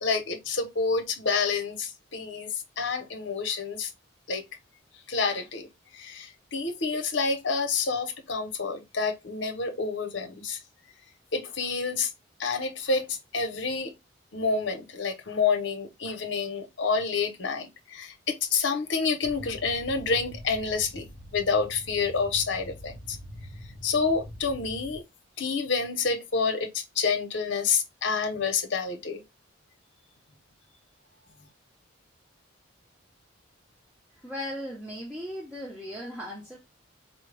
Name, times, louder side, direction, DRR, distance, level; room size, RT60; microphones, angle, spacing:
voice 1, 0.0-3.9 4.3-4.4 5.1-5.7 5.9-10.6 11.3-12.1 12.4-13.9 14.3-21.1 21.3-23.2 23.8-25.0 25.4-29.2, left 4 dB, 60° left, 0.8 m, -28 dB
sound 1, 19.2-25.0, equal, 25° left, 0.7 m, -44 dB
voice 2, 34.1-36.6, equal, 5° right, 0.7 m, -37 dB
4.2 x 2.2 x 3.3 m
head